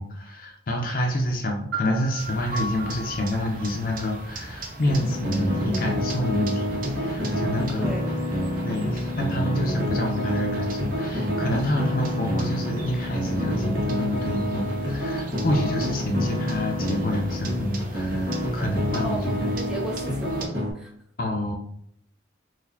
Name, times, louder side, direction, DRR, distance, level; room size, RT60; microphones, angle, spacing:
voice 1, 0.0-7.9 8.6-19.5 21.2-21.5, left 1 dB, 50° left, 1 dB, 0.6 m, -28 dB
sound 1, 1.7-5.6, right 1 dB, 85° right, 0.8 m, -36 dB
sound 2, 2.2-20.5, right 2 dB, 50° right, 0.6 m, -39 dB
sound 3, 4.8-20.7, equal, 70° right, 1.4 m, -28 dB
voice 2, 7.8-8.1 19.0-20.9, right 1 dB, 5° right, -1 dB, 0.6 m, -35 dB
3.9 x 2.6 x 2.7 m, 0.67 s
head